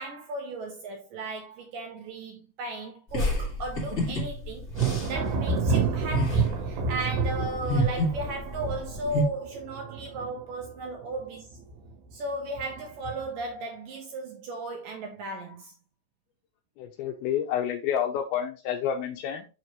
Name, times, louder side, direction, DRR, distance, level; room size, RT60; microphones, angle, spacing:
voice 1, 0.0-4.7 5.1-11.6 12.1-15.7, right 1 dB, 70° right, 2.2 m, -36 dB
sound 1, 3.1-9.2, left 1 dB, 25° left, 1.4 m, -30 dB
Thunder, 4.7-11.2 11.5-12.1 12.6-13.4, right 5 dB, 85° right, 3.5 m, -29 dB
voice 2, 16.8-19.5, left 9 dB, 85° left, 2.3 m, -29 dB
6.6 x 6.1 x 3.0 m
omnidirectional pair, 4.9 m